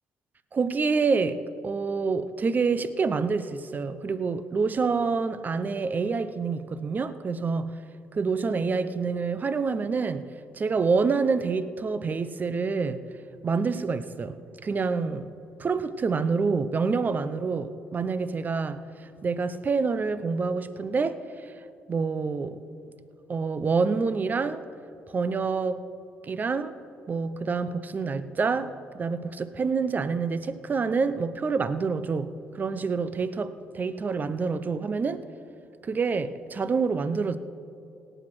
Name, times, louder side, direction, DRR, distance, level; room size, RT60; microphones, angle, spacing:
voice 1, 0.5-7.8 8.1-13.0 13.4-15.3 15.6-18.8 19.2-21.2 21.9-22.6 23.3-24.6 25.1-25.8 26.2-26.7 27.1-35.2 35.8-37.4, right 4 dB, 35° right, 0.7 m, -27 dB
17.5 x 8.0 x 6.1 m
supercardioid pair, 75°, 5 cm